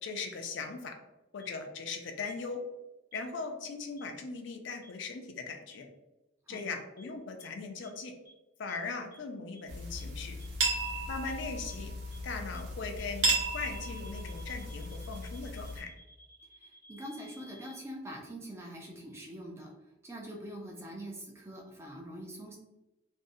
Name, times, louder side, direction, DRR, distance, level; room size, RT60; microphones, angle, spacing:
voice 1, 0.0-1.0 1.3-2.6 3.1-5.9 6.5-8.1 8.6-10.4 11.1-11.9 12.2-15.9, left 4 dB, 65° left, 4 dB, 0.4 m, -39 dB
sound 1, 1.4-1.5 2.2-2.3 3.1-3.2 4.0-4.1 4.8-4.9 5.7-5.8 6.5-6.6 7.0-7.1 7.4-7.5 7.8-7.9 8.2-8.3 8.7-8.8 9.1-9.2 9.5-9.6 10.0-10.1 10.4-10.5 10.8-10.9 11.2-11.3 11.7-11.8 12.1-12.2 12.5-12.6 13.0-13.1 13.4-17.8, equal, 45° right, 1.0 m, -56 dB
sound 2, 9.7-15.8, right 2 dB, 85° right, 0.7 m, -35 dB
voice 2, 16.6-19.7 20.0-22.6, equal, 15° right, 0 dB, 0.4 m, -44 dB
2.5 x 2.0 x 2.6 m, 0.98 s
head